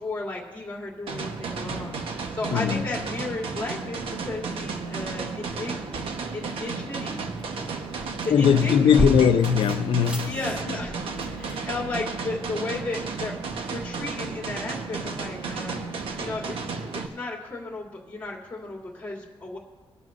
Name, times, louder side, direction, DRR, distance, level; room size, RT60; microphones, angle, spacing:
voice 1, 0.0-1.9 2.3-5.8 6.3-7.2 7.9-9.1 10.3-13.3 13.6-15.8 16.2-16.6 16.9-19.6, left 3 dB, 15° left, 2.9 m, -34 dB
sound 1, 1.1-17.1, right 4 dB, 75° right, 1.2 m, -33 dB
sound 2, 2.1-3.0 5.6-12.1, left 1 dB, 10° right, 1.5 m, -36 dB
voice 2, 2.5-2.8 8.3-10.4, left 7 dB, 65° left, 0.7 m, -20 dB
22.5 x 12.5 x 2.6 m
wide cardioid pair, 175°, 9 cm